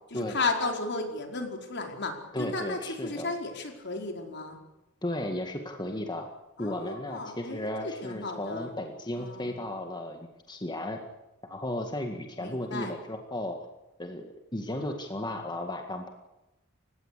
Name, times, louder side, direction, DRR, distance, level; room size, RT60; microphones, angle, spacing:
voice 1, 0.1-4.6 6.6-8.7 9.2-9.6 12.4-12.9, left 3 dB, 60° left, 3 dB, 4.8 m, -34 dB
voice 2, 2.3-3.3 5.0-6.3 6.6-11.0 11.4-13.7 14.0-16.1, left 1 dB, 20° left, 4 dB, 2.0 m, -35 dB
29.5 x 16.5 x 8.4 m, 0.99 s
head